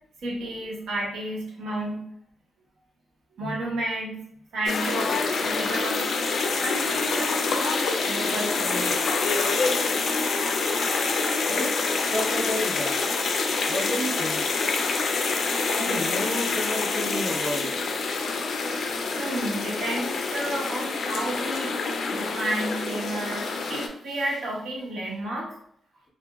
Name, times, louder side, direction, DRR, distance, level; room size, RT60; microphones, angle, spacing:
voice 1, 0.2-2.0 3.4-4.2 4.5-6.1 6.6-9.1 9.4-9.5 14.9-15.2 18.8-21.7 22.1-25.5, right 1 dB, 75° right, -3 dB, 0.9 m, -32 dB
sound 1, 4.7-23.9, left 4 dB, 55° left, 0.3 m, -26 dB
voice 2, 12.1-13.0 13.7-14.4 15.7-17.7, equal, 10° right, -3 dB, 0.5 m, -31 dB
2.8 x 2.5 x 2.3 m, 0.69 s
wide cardioid pair, 165°, 0 cm